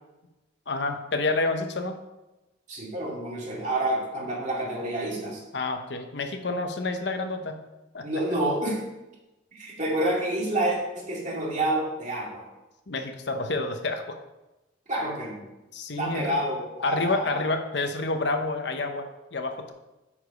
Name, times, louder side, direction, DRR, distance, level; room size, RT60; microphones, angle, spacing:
voice 1, 0.7-2.0 5.5-7.6 7.9-8.4 12.9-14.2 15.7-16.4 16.8-19.7, left 3 dB, 60° left, 6 dB, 0.8 m, -29 dB
voice 2, 2.7-5.4 8.0-8.8 9.5-12.4 14.9-15.4 16.0-17.4, right 1 dB, 40° right, -3 dB, 2.2 m, -28 dB
8.7 x 4.9 x 5.2 m, 1.0 s
head